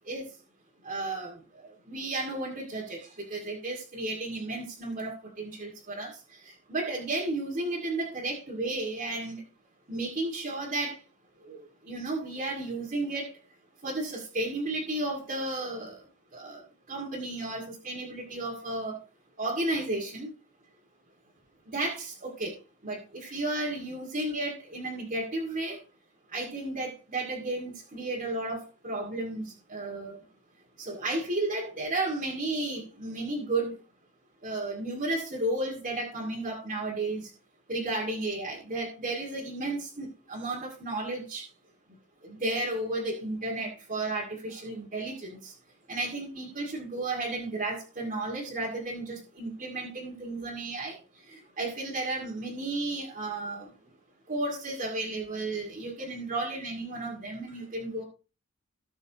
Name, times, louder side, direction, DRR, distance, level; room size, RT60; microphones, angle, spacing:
voice 1, 0.8-1.4 1.9-3.0 3.3-6.1 6.4-9.4 9.9-11.0 11.5-11.6 11.9-13.4 13.8-16.0 16.3-16.6 16.9-19.0 19.4-20.3 21.7-22.5 22.8-25.8 26.3-30.2 30.8-33.7 34.4-37.3 37.7-41.5 42.2-45.5 45.9-51.0 51.3-53.7 54.3-58.0, right 2 dB, 40° right, -4 dB, 2.4 m, -33 dB
18.5 x 6.3 x 3.0 m, 0.34 s
head